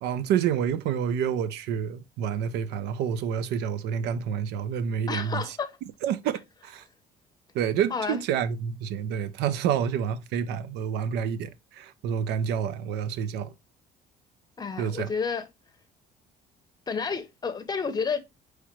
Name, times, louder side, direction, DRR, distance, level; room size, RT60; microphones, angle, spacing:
voice 1, 0.0-5.6 6.0-6.8 7.5-13.5 14.8-15.1, right 8 dB, 80° right, 0.5 m, -28 dB
voice 2, 5.1-5.7 7.9-8.2 14.6-15.5 16.9-18.2, left 5 dB, 25° left, 0.8 m, -30 dB
4.7 x 3.2 x 3.0 m
cardioid pair, 110°, 17 cm